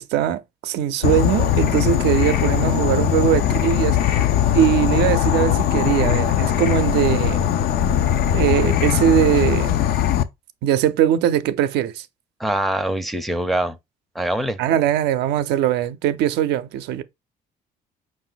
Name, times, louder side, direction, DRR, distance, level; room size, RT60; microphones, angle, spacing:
voice 1, 0.0-4.3 4.5-7.5 8.3-9.8 10.6-12.1 14.6-17.0, right 11 dB, 80° right, 0.5 m, -21 dB
Insect / Frog, 1.0-10.2, left 10 dB, 65° left, 0.5 m, -20 dB
voice 2, 12.4-13.8 14.1-14.6, right 1 dB, ahead, 0.5 m, -23 dB
4.8 x 2.5 x 3.8 m
cardioid pair, 110°, 17 cm